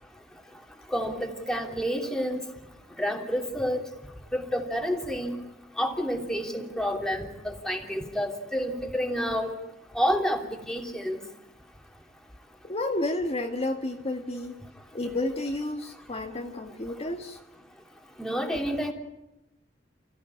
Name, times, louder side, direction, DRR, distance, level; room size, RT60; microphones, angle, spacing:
voice 1, 0.9-2.4 3.0-3.8 4.3-5.4 5.8-9.5 9.9-11.2 18.2-18.9, equal, 5° left, 2 dB, 3.0 m, -29 dB
voice 2, 12.6-14.6 14.9-17.4, left 2 dB, 35° left, 2 dB, 1.8 m, -31 dB
30.0 x 15.5 x 9.9 m, 0.96 s
head